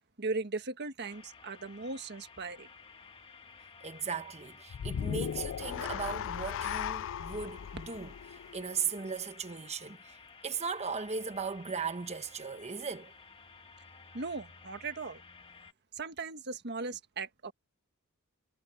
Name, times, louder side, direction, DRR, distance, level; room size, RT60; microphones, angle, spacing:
voice 1, 0.2-2.7 14.1-15.2 16.0-17.5, right 3 dB, 50° right, 1.4 m, -38 dB
sound 1, 1.0-15.7, left 5 dB, 25° left, 2.1 m, -54 dB
voice 2, 3.8-10.2 10.4-13.1, right 5 dB, 30° right, 1.2 m, -37 dB
sound 2, 4.7-9.1, left 8 dB, 60° left, 0.3 m, -37 dB
head